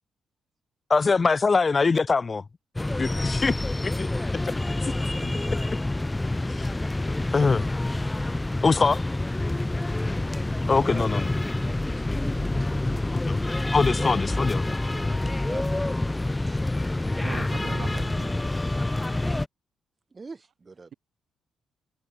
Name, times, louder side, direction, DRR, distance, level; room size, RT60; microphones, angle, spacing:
voice 1, 0.9-2.4 3.0-3.5 3.8-4.1 6.5-6.7 7.3-7.6 8.6-9.0 10.7-11.3 13.3-13.4 13.7-14.7, left 4 dB, 30° left, 0.4 m, -22 dB
sound 1, 2.8-19.5, left 2 dB, 15° left, 1.0 m, -27 dB
voice 2, 10.0-13.0 14.9-15.8 16.5-16.6 20.1-21.0, right 4 dB, 30° right, 3.1 m, -44 dB
voice 3, 17.2-18.3, right 8 dB, 60° right, 1.9 m, -40 dB
open air
cardioid pair, 90°, 0 cm